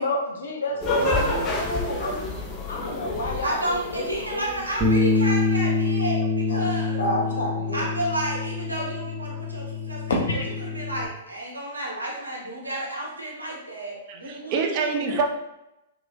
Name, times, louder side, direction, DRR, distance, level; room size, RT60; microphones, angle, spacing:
voice 1, 0.0-2.2 2.7-4.0 4.3-4.6 6.5-6.7 7.0-7.9 10.1-10.6, left 1 dB, 60° left, 0 dB, 0.7 m, -29 dB
sound 1, 0.8-5.5, left 2 dB, 25° left, 0.5 m, -30 dB
voice 2, 0.8-1.6 14.1-15.2, right 4 dB, 35° right, 3 dB, 0.5 m, -27 dB
voice 3, 3.4-7.0 7.7-10.2 10.6-15.1, right 1 dB, 80° right, -4 dB, 1.0 m, -31 dB
Bass guitar, 4.8-11.1, left 3 dB, 10° right, 1.2 m, -26 dB
3.2 x 3.0 x 2.5 m, 0.90 s
figure-of-eight pair, 105°, 0 cm